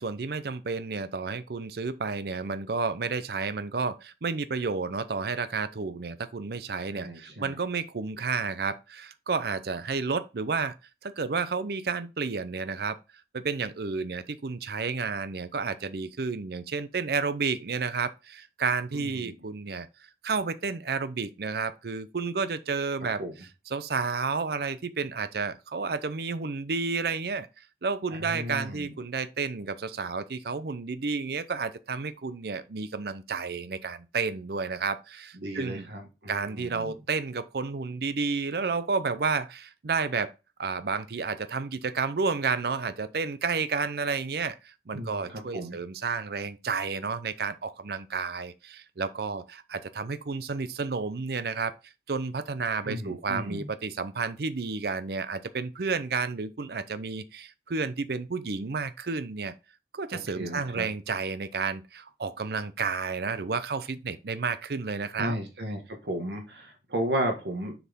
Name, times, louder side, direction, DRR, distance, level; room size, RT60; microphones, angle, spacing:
voice 1, 0.0-10.7 11.0-13.0 13.3-19.9 20.2-23.2 23.7-35.9 36.3-40.3 40.6-59.5 59.9-65.4, right 4 dB, 60° right, 0.6 m, -31 dB
voice 2, 6.9-7.6 18.9-19.3 23.2-23.3 28.2-28.9 35.3-37.0 44.9-45.8 52.8-53.7 60.1-60.9 65.2-67.7, right 1 dB, 75° right, 1.7 m, -34 dB
6.8 x 4.8 x 3.6 m
head